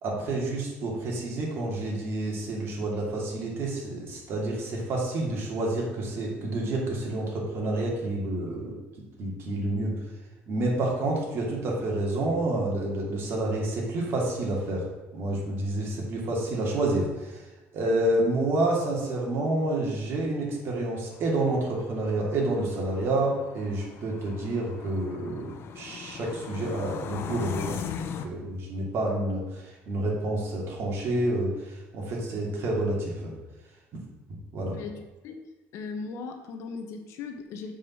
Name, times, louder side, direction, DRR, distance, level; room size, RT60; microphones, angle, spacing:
voice 1, 0.0-8.8 9.2-9.9 10.5-14.9 15.1-17.4 17.7-27.8 28.2-33.3 33.9-34.0 34.5-34.7, right 2 dB, 50° right, -2 dB, 2.7 m, -29 dB
sound 1, 21.1-28.3, left 7 dB, 55° left, 0.7 m, -40 dB
voice 2, 34.7-35.4 35.7-37.7, left 4 dB, 70° left, 5 dB, 1.2 m, -38 dB
7.2 x 5.3 x 6.3 m, 1.1 s
cardioid pair, 150°, 5 cm